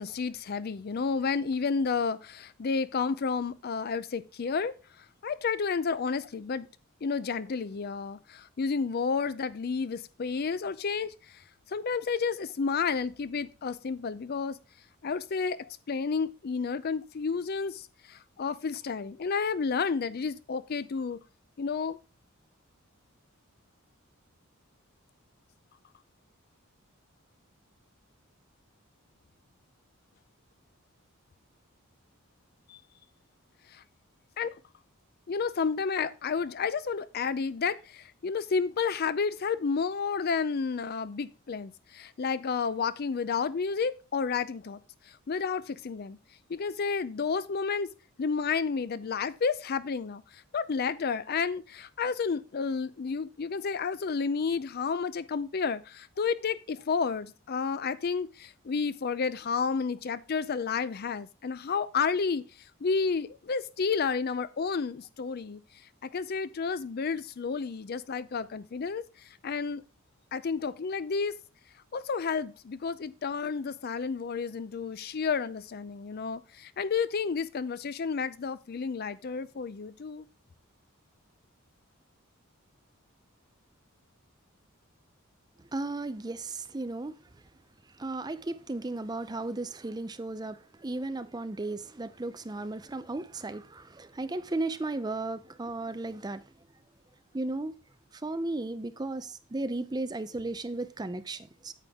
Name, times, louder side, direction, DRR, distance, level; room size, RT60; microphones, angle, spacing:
voice 1, 0.0-4.7 5.2-6.7 7.0-11.1 11.7-14.6 15.0-21.2 21.6-22.0 32.7-32.8 34.4-34.5 35.3-44.8 45.3-46.2 46.5-47.9 48.2-50.2 50.5-62.4 62.8-65.6 66.0-69.0 69.4-69.8 70.3-71.4 71.9-80.2, left 5 dB, 45° left, 0.4 m, -31 dB
voice 2, 85.7-87.2 88.0-96.4 97.3-97.7 98.2-101.7, right 2 dB, 20° right, 0.5 m, -35 dB
9.2 x 7.5 x 3.5 m
head